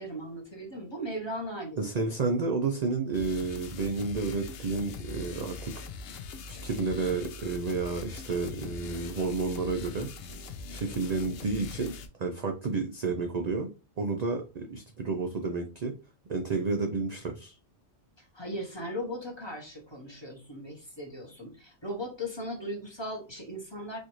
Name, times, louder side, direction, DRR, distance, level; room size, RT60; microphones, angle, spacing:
voice 1, 0.0-2.2 18.2-24.0, equal, 25° left, 0 dB, 0.9 m, -38 dB
voice 2, 1.8-5.9 6.5-10.1 10.7-11.9 12.2-13.7 14.0-15.9 16.3-17.6, right 4 dB, 60° right, 3 dB, 0.4 m, -31 dB
sound 1, 3.1-12.1, left 4 dB, 65° left, 0.7 m, -42 dB
4.2 x 2.5 x 3.0 m, 0.31 s
omnidirectional pair, 1.3 m